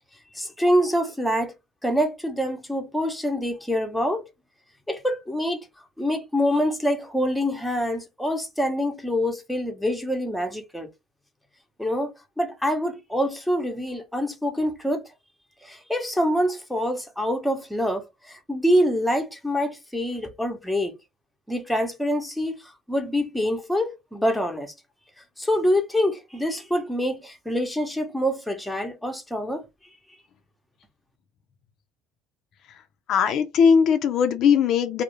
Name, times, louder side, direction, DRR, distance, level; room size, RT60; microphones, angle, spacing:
voice 1, 0.3-1.5 1.8-4.3 4.9-5.7 6.0-10.9 11.8-15.0 15.6-21.0 21.5-22.5 22.9-24.7 25.4-29.6, equal, 5° left, 0.7 m, -25 dB
voice 2, 33.1-35.0, left 6 dB, 60° left, 0.4 m, -19 dB
2.3 x 2.0 x 2.9 m
supercardioid pair, 90°, 0 cm